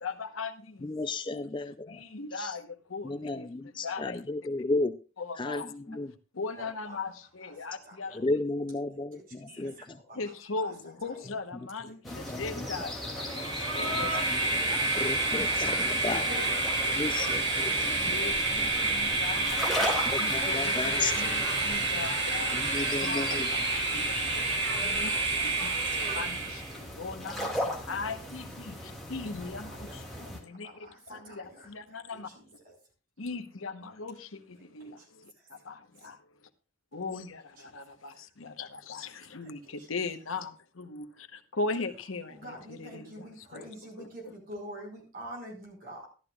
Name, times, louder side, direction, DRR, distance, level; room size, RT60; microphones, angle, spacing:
voice 1, 0.0-0.9 1.3-1.4 1.9-3.5 3.8-4.2 5.2-5.7 6.3-8.2 9.5-9.7 10.2-13.1 13.7-14.3 14.7-15.0 15.3-15.5 16.3-16.9 18.0-23.3 23.9-25.7 26.1-26.6 26.9-32.3 33.2-35.3 35.6-36.2 36.9-43.6 44.0-44.3, left 3 dB, 90° left, 1.0 m, -39 dB
voice 2, 0.8-2.0 2.3-2.6 3.0-5.0 5.3-6.1 8.1-10.0 12.1-12.9 13.9-16.2 16.9-17.7 20.1-21.4 22.5-23.5 25.9-26.0, left 2 dB, 25° left, 0.4 m, -34 dB
voice 3, 6.6-7.0 7.7-7.8 8.1-8.2 9.1-9.2 10.1-10.2 12.3-12.4 13.0-14.2 15.0-15.6 16.3-16.8 17.6-18.0 18.5-18.9 19.8-19.9 20.3-20.8 29.6-29.9 30.8-31.7 34.8-34.9 42.3-46.1, equal, 45° right, 5.2 m, -46 dB
sound 1, 12.0-30.4, left 1 dB, ahead, 2.5 m, -38 dB
Train, 13.2-26.7, right 2 dB, 65° right, 4.9 m, -29 dB
13.5 x 12.0 x 2.4 m
head